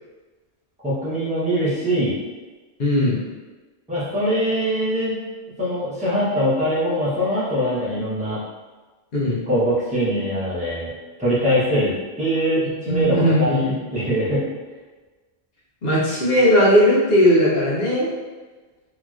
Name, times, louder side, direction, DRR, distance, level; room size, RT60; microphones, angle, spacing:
voice 1, 0.8-2.1 3.9-5.2 5.6-8.4 9.5-10.9 11.2-11.9 12.2-14.5, equal, 5° right, -10 dB, 0.9 m, -22 dB
voice 2, 2.8-3.2 9.1-9.4 12.9-13.8 15.8-18.1, equal, 60° left, -6 dB, 1.1 m, -18 dB
3.0 x 2.8 x 2.4 m, 1.3 s
omnidirectional pair, 1.2 m